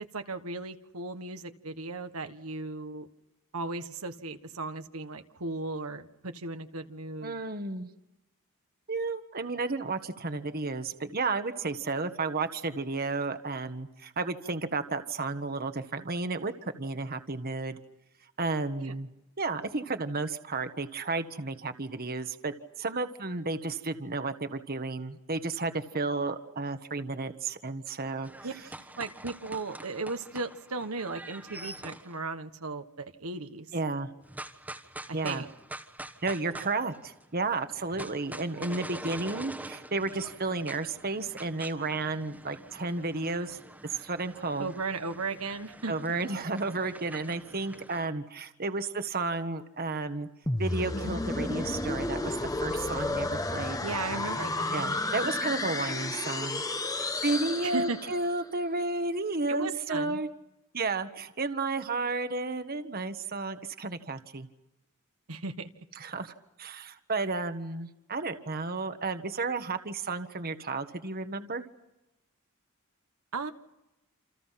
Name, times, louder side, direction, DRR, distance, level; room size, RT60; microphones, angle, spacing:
voice 1, 0.1-3.1 3.5-7.4 18.8-18.9 28.4-28.5 29.0-33.7 35.1-35.5 44.6-45.9 53.8-54.9 57.6-58.0 59.5-60.2 65.3-65.7 73.3-73.5, right 3 dB, 75° right, 7 dB, 1.5 m, -36 dB
voice 2, 7.2-7.9 8.9-17.8 18.4-19.1 19.4-28.3 33.7-34.1 35.1-35.4 36.2-43.6 43.9-44.7 45.9-50.3 50.6-53.8 54.7-56.6 57.0-60.3 60.7-64.5 65.9-66.3 66.6-71.6, right 3 dB, 45° right, 8 dB, 1.5 m, -32 dB
sound 1, 28.2-32.1 34.2-37.2 37.5-48.1, right 1 dB, 5° right, 1.4 m, -45 dB
sound 2, 50.5-58.3, left 2 dB, 15° left, 1.2 m, -32 dB
28.5 x 28.5 x 5.9 m, 0.95 s
head